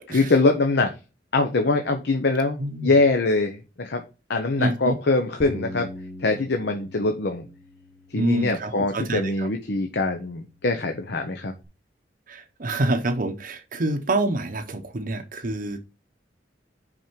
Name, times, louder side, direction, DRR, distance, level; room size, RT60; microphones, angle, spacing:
voice 1, 0.1-0.9 1.3-4.0 4.3-5.9 6.2-7.5 8.1-11.5, left 3 dB, 65° left, 0.9 m, -23 dB
voice 2, 2.6-2.9 4.6-4.9 8.1-9.5 12.3-15.8, right 2 dB, 50° right, 0.7 m, -27 dB
Bass guitar, 5.4-11.6, left 1 dB, ahead, 1.0 m, -43 dB
6.2 x 5.1 x 4.5 m
head